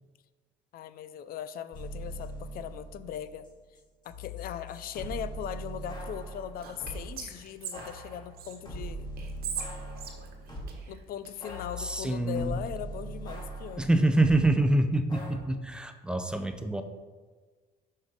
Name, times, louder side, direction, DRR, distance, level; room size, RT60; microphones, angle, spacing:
voice 1, 0.7-3.5 4.0-9.1 10.9-13.9, left 10 dB, 60° left, 13 dB, 0.5 m, -39 dB
sound 1, 1.7-7.1 7.7-10.9 11.4-14.4 15.1-15.4, right 1 dB, 25° left, 2.0 m, -41 dB
Whispering, 6.6-8.6 9.2-11.3, right 7 dB, 65° right, 1.2 m, -40 dB
voice 2, 11.8-12.6 13.8-16.8, right 2 dB, 5° right, 7 dB, 0.6 m, -26 dB
6.1 x 5.5 x 5.1 m, 1.4 s
cardioid pair, 110°, 17 cm